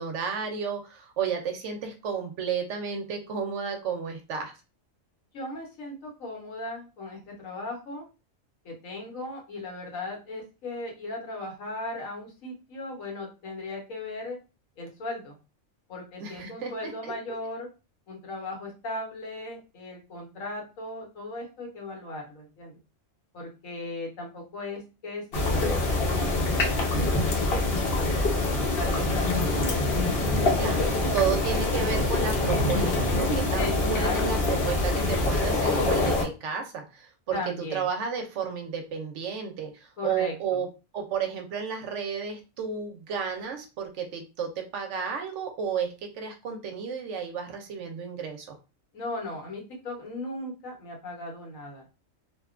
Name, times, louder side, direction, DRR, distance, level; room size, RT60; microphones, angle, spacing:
voice 1, 0.0-4.5 16.2-16.7 17.0-17.1 30.6-34.4 34.7-37.4 37.7-40.7 40.9-48.6, right 6 dB, 70° right, 4 dB, 0.9 m, -32 dB
voice 2, 5.3-8.0 8.6-14.4 14.8-15.4 15.9-17.7 18.1-22.7 23.3-26.3 27.0-27.6 27.9-28.2 28.7-29.3 33.6-35.0 37.3-37.9 40.0-40.6 48.9-51.9, left 2 dB, 80° left, 0 dB, 1.3 m, -37 dB
sound 1, 25.3-36.2, left 2 dB, 55° left, 0.9 m, -25 dB
2.8 x 2.2 x 2.4 m, 0.30 s
omnidirectional pair, 1.4 m